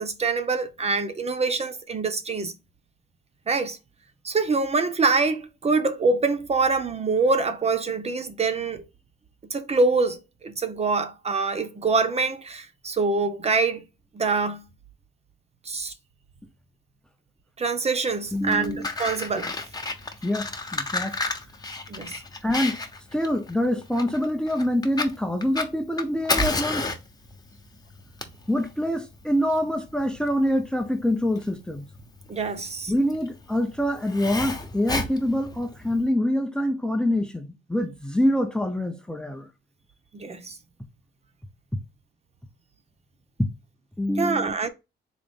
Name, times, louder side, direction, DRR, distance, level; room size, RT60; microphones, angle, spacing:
voice 1, 0.0-2.5 3.5-3.8 4.2-8.8 9.5-13.8 14.1-14.6 15.7-15.9 17.6-19.5 21.9-22.2 32.3-32.9 40.1-40.6 44.2-44.7, right 4 dB, 30° right, 0.7 m, -25 dB
Fire, 18.3-36.0, left 2 dB, 20° left, 0.9 m, -32 dB
voice 2, 18.3-18.9 20.2-21.2 22.4-22.8 23.1-26.9 28.5-31.9 32.9-39.5 41.7-41.8 43.4-43.5 44.0-44.5, left 1 dB, 5° left, 0.6 m, -25 dB
4.0 x 2.5 x 3.6 m
cardioid pair, 90°, 20 cm